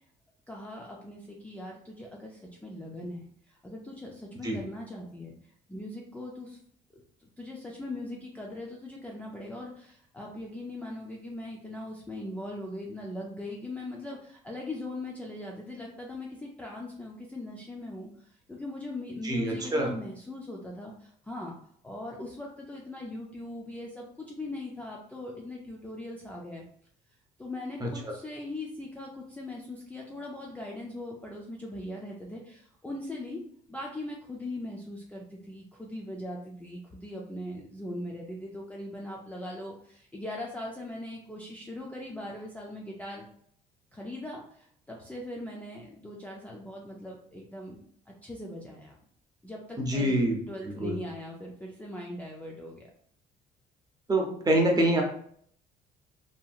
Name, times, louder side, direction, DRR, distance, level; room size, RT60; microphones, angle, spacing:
voice 1, 0.5-5.3 5.7-6.6 6.9-21.5 21.8-26.6 27.4-33.4 33.7-43.3 43.9-47.8 48.1-48.9 49.4-50.2 50.5-52.9, left 1 dB, 10° left, -2 dB, 0.4 m, -40 dB
voice 2, 19.2-19.9 27.8-28.1 49.8-50.4 50.6-51.0 54.1-55.0, right 1 dB, 20° right, 0 dB, 0.7 m, -26 dB
2.8 x 2.7 x 2.3 m, 0.63 s
cardioid pair, 110°, 17 cm